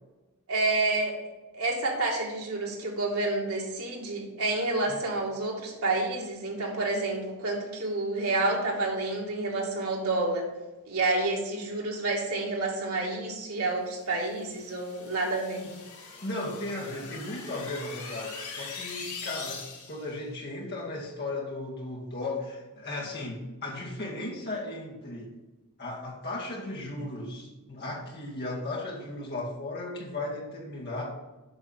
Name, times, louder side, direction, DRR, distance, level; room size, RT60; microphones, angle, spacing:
voice 1, 0.5-1.2 1.5-10.5 10.9-15.6, right 2 dB, 80° right, -2 dB, 2.4 m, -29 dB
sound 1, 14.1-20.1, left 5 dB, 80° left, 2.3 m, -42 dB
voice 2, 16.2-25.3 25.8-31.1, left 2 dB, 45° left, -3 dB, 2.2 m, -36 dB
8.0 x 6.1 x 5.7 m, 1.1 s
head